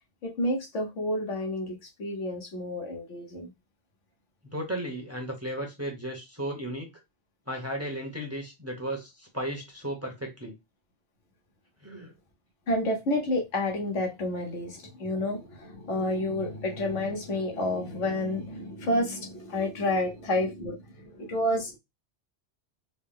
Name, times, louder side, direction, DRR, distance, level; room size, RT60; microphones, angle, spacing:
voice 1, 0.2-3.5 12.7-21.8, left 1 dB, 85° left, 1.4 m, -30 dB
voice 2, 4.5-6.9 7.5-10.5 11.8-12.1, right 1 dB, 15° right, 0.9 m, -35 dB
4.0 x 2.1 x 3.6 m
omnidirectional pair, 1.2 m